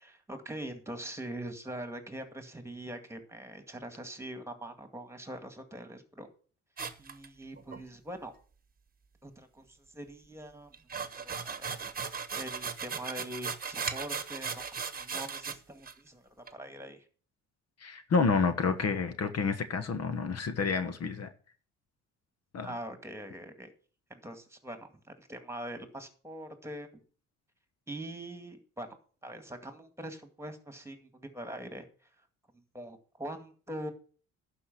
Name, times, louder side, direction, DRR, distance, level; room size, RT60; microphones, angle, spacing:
voice 1, 0.0-6.3 7.0-8.3 9.2-10.8 11.2-11.8 12.3-14.6 15.0-17.0 22.6-23.7 24.1-27.0 27.9-28.9 29.2-31.9 32.7-33.9, right 1 dB, 10° right, 2.1 m, -43 dB
sound 1, 6.8-7.8 10.7-15.6 15.8-15.9 16.5-16.6, right 6 dB, 30° right, 1.2 m, -37 dB
voice 2, 17.8-21.3 22.5-22.7, left 5 dB, 55° left, 1.3 m, -29 dB
11.5 x 5.0 x 7.7 m
cardioid pair, 90°, 30 cm